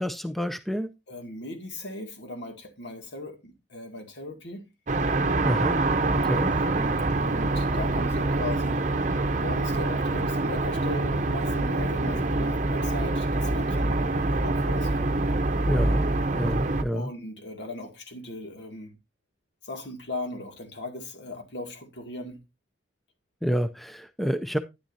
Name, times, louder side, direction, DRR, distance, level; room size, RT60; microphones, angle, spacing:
voice 1, 0.0-0.9 5.4-5.8 6.1-6.5 15.6-16.1 16.3-17.1 23.4-24.6, equal, ahead, 0.4 m, -28 dB
voice 2, 1.1-4.7 6.3-15.0 16.9-18.9 19.6-22.4, left 2 dB, 75° left, 2.2 m, -38 dB
sound 1, 4.9-16.8, right 2 dB, 40° right, 0.8 m, -25 dB
10.0 x 10.0 x 2.7 m
head